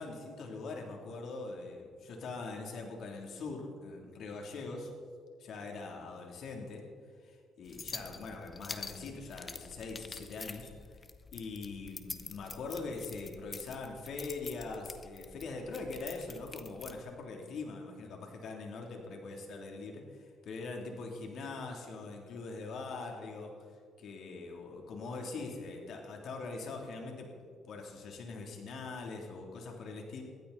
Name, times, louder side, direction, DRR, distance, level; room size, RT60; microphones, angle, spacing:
voice 1, 0.0-4.9 5.4-6.8 7.2-10.7 11.3-23.5 24.0-27.3 27.7-30.2, left 3 dB, 65° left, 1 dB, 3.3 m, -42 dB
sound 1, 7.7-17.0, left 4 dB, 30° left, 1.1 m, -47 dB
22.0 x 14.5 x 4.3 m, 2.1 s
cardioid pair, 90°, 0 cm